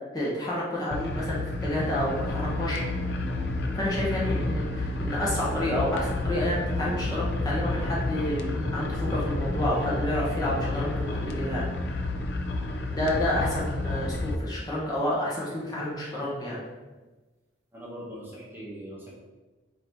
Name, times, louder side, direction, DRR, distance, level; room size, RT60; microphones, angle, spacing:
voice 1, 0.1-2.8 3.7-12.0 12.9-16.6, left 1 dB, 20° left, -6 dB, 0.9 m, -29 dB
sound 1, 0.9-14.4, left 2 dB, 60° left, 0.4 m, -30 dB
sound 2, 1.2-11.7, right 1 dB, 40° right, 0.6 m, -43 dB
voice 2, 17.7-19.1, equal, 10° right, -6 dB, 0.9 m, -41 dB
3.9 x 2.7 x 4.4 m, 1.2 s
head